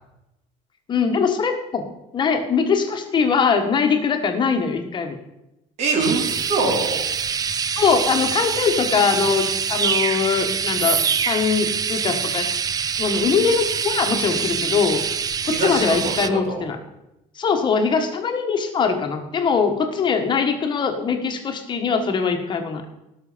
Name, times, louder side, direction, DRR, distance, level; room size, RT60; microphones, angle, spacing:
voice 1, 0.9-1.8 2.1-5.2 6.6-6.7 7.8-11.0 11.3-12.6 13.0-15.0 15.5-16.8 17.4-22.8, left 5 dB, 30° left, 5 dB, 1.5 m, -22 dB
voice 2, 5.8-7.1 15.4-16.6, right 3 dB, 50° right, 2 dB, 2.9 m, -24 dB
sound 1, 6.0-16.3, right 7 dB, 25° right, 0.5 m, -25 dB
17.5 x 6.4 x 5.1 m, 0.90 s
cardioid pair, 145°, 15 cm